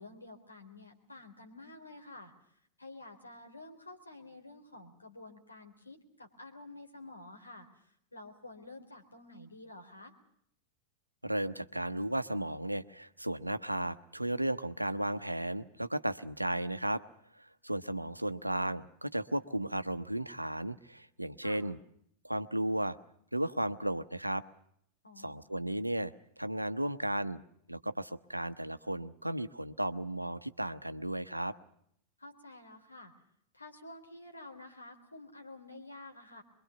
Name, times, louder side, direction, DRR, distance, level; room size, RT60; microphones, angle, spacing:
voice 1, 0.0-2.3 2.8-7.8 8.1-10.1 21.4-21.6 25.0-25.4 32.2-33.1 33.5-36.4, left 2 dB, 80° left, 4 dB, 3.7 m, -50 dB
voice 2, 11.2-17.0 17.3-21.8 22.2-23.0 23.3-24.4 25.2-27.4 27.7-31.5, right 1 dB, 85° right, 12 dB, 0.9 m, -34 dB
25.0 x 22.5 x 7.0 m, 0.71 s
figure-of-eight pair, 90°, 0 cm